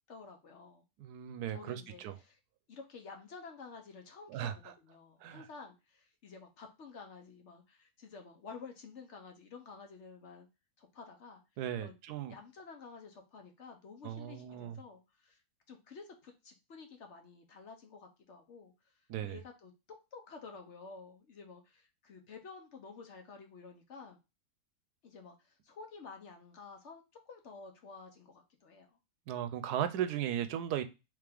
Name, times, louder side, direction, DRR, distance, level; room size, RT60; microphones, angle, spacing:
voice 1, 0.1-0.8 1.5-2.4 2.7-10.5 10.8-11.4 11.8-11.9 12.3-15.4 15.7-19.7 20.1-24.2 25.0-29.0, left 4 dB, 55° left, 0.9 m, -51 dB
voice 2, 1.0-2.2 4.3-4.6 5.2-5.5 11.6-12.3 14.0-14.8 19.1-19.4 29.3-30.8, right 10 dB, 85° right, 1.1 m, -36 dB
3.5 x 3.3 x 3.4 m
omnidirectional pair, 1.6 m